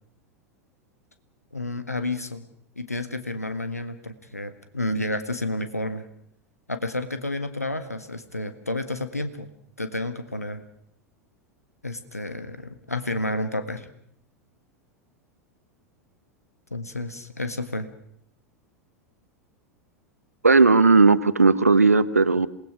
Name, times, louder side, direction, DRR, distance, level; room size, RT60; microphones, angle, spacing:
voice 1, 1.5-2.4 2.7-6.0 6.7-9.5 9.8-10.6 11.8-13.9 16.7-17.9, left 1 dB, 85° left, 10 dB, 1.6 m, -30 dB
voice 2, 20.4-22.5, right 4 dB, 80° right, 15 dB, 0.9 m, -16 dB
27.0 x 19.5 x 6.2 m, 0.68 s
figure-of-eight pair, 85°, 8 cm